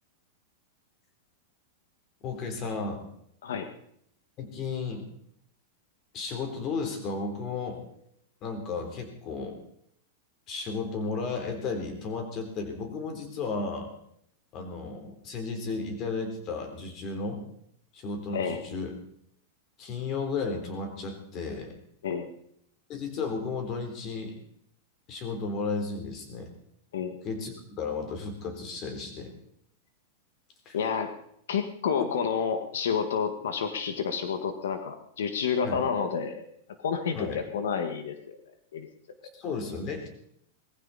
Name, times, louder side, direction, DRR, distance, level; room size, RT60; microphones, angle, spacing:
voice 1, 2.2-3.1 4.4-5.1 6.1-7.8 8.4-9.6 10.5-13.9 14.5-17.4 17.9-19.0 19.8-21.7 22.9-24.3 25.1-26.5 27.2-27.5 27.8-29.3 30.7-30.8 35.6-35.8 37.2-37.4 39.3-40.1, left 4 dB, 30° left, 4 dB, 3.6 m, -34 dB
voice 2, 30.7-31.1 31.5-36.4 36.8-38.4 38.7-38.9, left 6 dB, 85° left, 7 dB, 1.8 m, -29 dB
20.0 x 15.0 x 4.3 m, 0.70 s
supercardioid pair, 155°, 0 cm